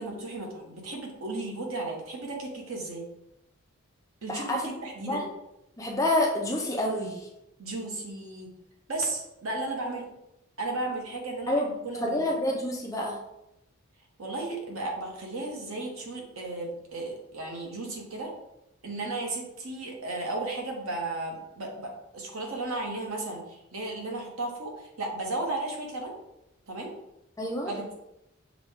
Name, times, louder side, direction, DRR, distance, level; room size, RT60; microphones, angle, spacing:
voice 1, 0.0-3.0 4.2-5.3 7.6-8.5 8.9-10.0 10.6-12.2 14.2-18.3 18.8-26.1 26.7-26.9 27.7-27.9, right 2 dB, 75° right, 0 dB, 1.1 m, -34 dB
voice 2, 4.3-4.6 5.0-5.3 5.8-7.3 11.5-11.7 12.0-13.2 27.4-27.7, left 1 dB, 15° left, -1 dB, 0.5 m, -28 dB
6.0 x 2.4 x 3.5 m, 0.87 s
head